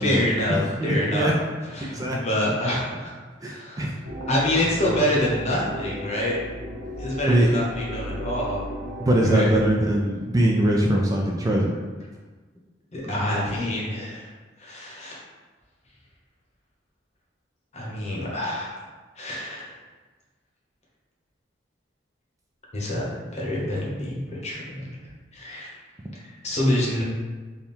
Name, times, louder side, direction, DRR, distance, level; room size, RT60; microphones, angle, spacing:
voice 1, 0.0-1.3 1.7-3.1 3.4-3.9 4.3-6.4 7.0-8.6 9.2-9.6 12.9-14.3 14.6-15.2 17.7-18.8 19.2-19.7 22.7-24.9 25.3-25.7 26.1-27.0, left 1 dB, 35° left, -4 dB, 0.9 m, -26 dB
voice 2, 0.8-1.3 1.8-2.2 3.4-4.0 7.3-7.5 9.0-11.8, right 1 dB, 20° right, -2 dB, 0.3 m, -22 dB
sound 1, 4.0-9.7, equal, 65° right, 1.0 m, -34 dB
3.5 x 2.2 x 4.2 m, 1.4 s
head